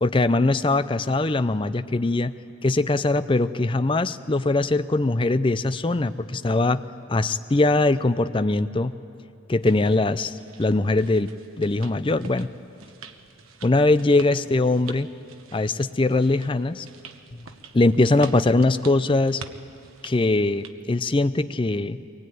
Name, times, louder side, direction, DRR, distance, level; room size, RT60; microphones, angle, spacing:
voice 1, 0.0-2.3 2.6-6.8 7.1-8.9 9.5-11.3 11.6-12.5 13.6-15.1 15.5-16.9 17.3-17.5 17.7-19.4 20.0-22.0, left 2 dB, 25° left, 12 dB, 0.5 m, -21 dB
sound 1, 9.6-20.8, right 4 dB, 85° right, 1.1 m, -46 dB
23.0 x 20.0 x 9.3 m, 2.7 s
head